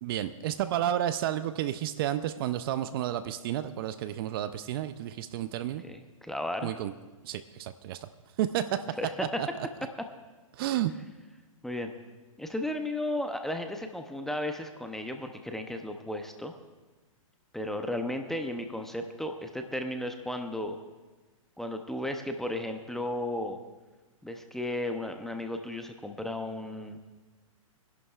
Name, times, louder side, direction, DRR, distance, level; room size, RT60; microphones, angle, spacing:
voice 1, 0.0-5.8 6.6-6.9 7.2-8.1 8.4-8.8 9.4-9.5 10.5-10.9, right 12 dB, 40° right, 12 dB, 0.5 m, -31 dB
voice 2, 5.8-6.7 9.0-9.4 11.6-11.9 12.4-16.5 17.5-20.8 21.6-23.6 24.2-27.0, left 1 dB, ahead, 5 dB, 0.6 m, -34 dB
24.5 x 11.0 x 2.4 m, 1.2 s
hypercardioid pair, 140°, 18 cm